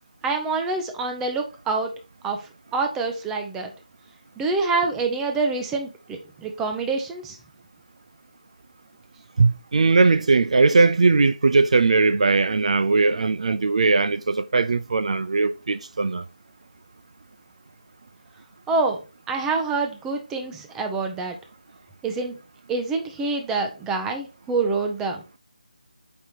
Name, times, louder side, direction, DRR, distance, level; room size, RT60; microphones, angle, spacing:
voice 1, 0.2-1.9 2.2-3.7 4.4-7.4 18.7-19.0 19.3-21.4 22.0-22.4 22.7-25.4, right 3 dB, 10° right, 0.6 m, -26 dB
voice 2, 9.4-16.2, right 3 dB, 55° right, 0.3 m, -19 dB
5.2 x 4.4 x 4.3 m
figure-of-eight pair, 160°, 4 cm